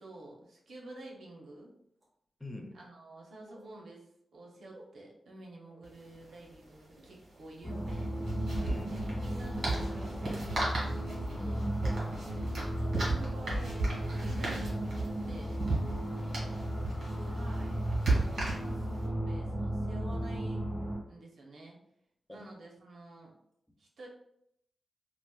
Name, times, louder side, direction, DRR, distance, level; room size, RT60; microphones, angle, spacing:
voice 1, 0.0-1.7 2.7-8.2 8.9-11.7 12.8-15.6 17.3-20.6 21.1-21.8 22.3-23.3 23.8-24.1, right 1 dB, 75° right, -1 dB, 0.7 m, -50 dB
sound 1, 1.0-1.1 2.0-2.1 3.5-3.7 4.7-4.9 5.7-5.9 6.8-7.1 7.7-7.9 8.6-8.7 9.4-9.6 10.3-10.4 11.1-11.2 11.9-12.0 12.8-12.9 13.8-13.9 14.7-14.8 15.3-15.4, right 1 dB, 35° right, 1.4 m, -55 dB
voice 2, 2.4-2.8 8.6-9.0 11.8-12.1 16.1-17.3 22.3-22.5, left 1 dB, 5° left, 2 dB, 0.4 m, -46 dB
sound 2, 5.8-5.9 6.1-6.3 7.8-19.0, right 2 dB, 55° right, 1.5 m, -35 dB
sound 3, 7.6-21.0, right 1 dB, 25° left, 0.9 m, -35 dB
4.1 x 2.1 x 2.3 m, 0.75 s
wide cardioid pair, 145°, 0 cm